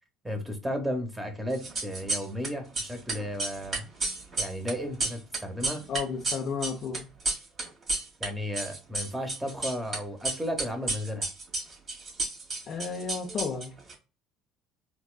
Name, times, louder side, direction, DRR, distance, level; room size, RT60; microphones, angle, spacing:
voice 1, 0.2-3.8 4.4-5.8 8.2-11.3, equal, 10° right, 1.0 m, -34 dB
sound 1, 1.5-2.5 2.7-8.3 8.5-10.0 10.2-13.9, right 2 dB, 40° right, 1.8 m, -31 dB
voice 2, 5.9-7.1 12.7-13.7, left 6 dB, 50° left, 0.6 m, -32 dB
4.1 x 2.3 x 2.3 m
hypercardioid pair, 70°, 0 cm